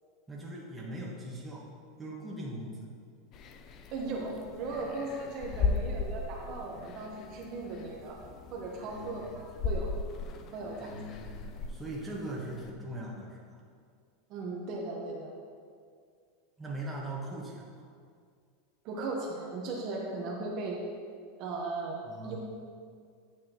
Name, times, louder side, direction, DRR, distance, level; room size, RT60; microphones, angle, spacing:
voice 1, 0.3-1.6 2.0-2.9 5.5-6.1 8.8-9.4 10.8-13.6 16.6-17.9 22.1-22.4, right 1 dB, 10° right, -4 dB, 1.3 m, -41 dB
sound 1, 3.3-12.7, left 4 dB, 40° left, 0.5 m, -37 dB
voice 2, 3.9-8.2 8.5-9.9 10.5-10.9 14.3-15.3 18.8-20.8 21.4-22.4, right 3 dB, 50° right, -1 dB, 1.1 m, -37 dB
9.1 x 6.0 x 3.0 m, 2.1 s
supercardioid pair, 135°, 0 cm